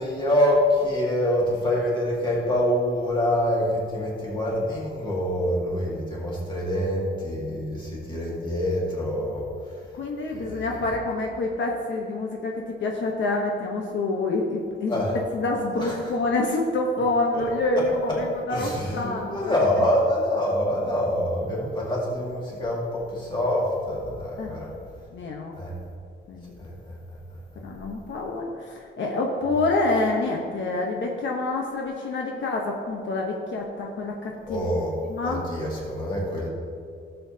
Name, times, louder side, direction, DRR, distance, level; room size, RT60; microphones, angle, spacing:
voice 1, 0.0-9.4 10.3-10.8 14.9-15.2 15.8-16.0 17.3-17.4 17.8-18.2 18.5-24.7 25.5-25.7 26.6-26.7 34.5-36.5, left 1 dB, 25° left, -4 dB, 2.2 m, -26 dB
voice 2, 9.9-15.0 15.3-19.6 24.4-24.8 25.1-25.6 26.3-26.6 27.6-34.7 35.0-35.4, left 2 dB, 65° left, 0 dB, 1.0 m, -27 dB
16.5 x 6.9 x 2.8 m, 2.3 s
wide cardioid pair, 170°, 20 cm